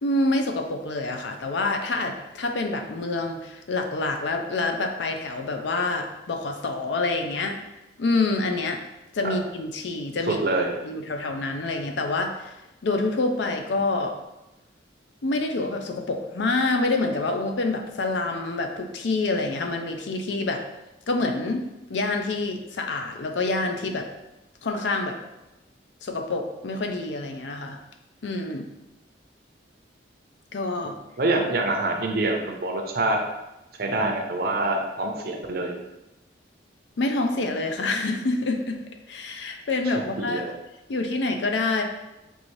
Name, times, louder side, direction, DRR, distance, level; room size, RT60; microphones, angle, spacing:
voice 1, 0.0-7.6 8.0-8.8 9.1-10.4 10.8-12.5 12.8-14.2 15.2-20.6 21.1-24.1 24.6-25.2 26.0-27.8 28.2-28.7 30.5-31.0 37.0-38.8 39.1-40.4 40.9-41.8, left 2 dB, 70° left, 4 dB, 0.5 m, -27 dB
voice 2, 31.2-33.2 33.8-35.7 40.2-40.5, right 2 dB, 55° right, 2 dB, 0.6 m, -25 dB
5.3 x 2.6 x 3.1 m, 0.97 s
head